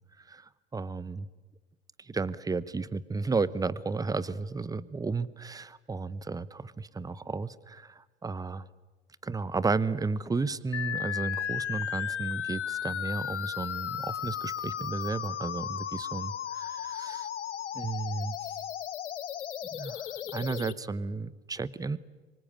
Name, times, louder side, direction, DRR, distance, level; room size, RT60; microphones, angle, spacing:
voice 1, 0.2-1.3 2.0-8.7 9.2-17.3 17.7-18.6 19.7-22.0, right 4 dB, 10° right, 18 dB, 0.9 m, -33 dB
sound 1, 10.7-20.7, left 10 dB, 85° left, 1.0 m, -35 dB
25.5 x 24.0 x 8.9 m, 1.3 s
hypercardioid pair, 90°, 34 cm